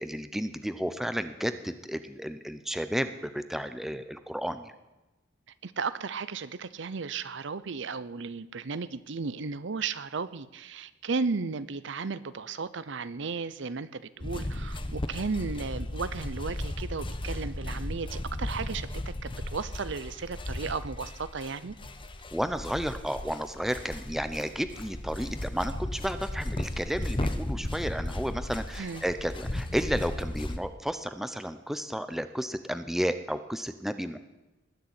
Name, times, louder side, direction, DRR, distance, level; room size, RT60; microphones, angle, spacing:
voice 1, 0.0-4.7 22.3-34.2, equal, ahead, 10 dB, 0.8 m, -32 dB
voice 2, 5.6-21.7 28.8-29.0, right 4 dB, 65° right, 15 dB, 0.7 m, -34 dB
sound 1, 14.2-30.6, left 1 dB, 25° left, 1.0 m, -35 dB
20.0 x 6.8 x 9.8 m, 1.1 s
head